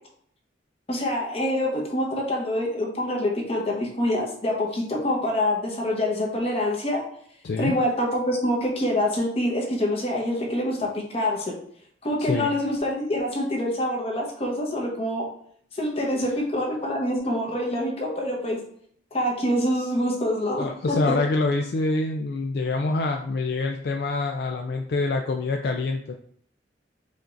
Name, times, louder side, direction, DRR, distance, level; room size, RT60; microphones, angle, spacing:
voice 1, 0.9-7.0 7.6-11.6 12.0-15.2 15.7-18.6 19.1-21.2, left 1 dB, 35° left, -1 dB, 1.1 m, -26 dB
voice 2, 12.2-12.5 20.6-26.1, left 3 dB, 60° left, 3 dB, 0.4 m, -26 dB
5.1 x 2.5 x 3.9 m, 0.62 s
head